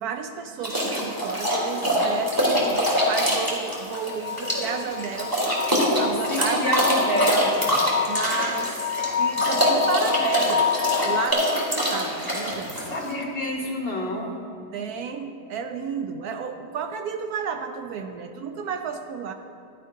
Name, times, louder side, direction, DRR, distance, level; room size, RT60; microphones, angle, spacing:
voice 1, 0.0-5.6 6.0-6.7 8.1-10.7 11.0-13.0 14.7-19.3, right 6 dB, 70° right, 6 dB, 1.0 m, -32 dB
sound 1, 0.6-13.1, equal, 10° right, 1.8 m, -24 dB
sound 2, 1.6-11.3, left 8 dB, 70° left, 0.5 m, -29 dB
voice 2, 6.3-7.8 12.8-14.3, equal, 40° left, -1 dB, 1.1 m, -27 dB
14.0 x 11.0 x 2.7 m, 2.4 s
omnidirectional pair, 1.8 m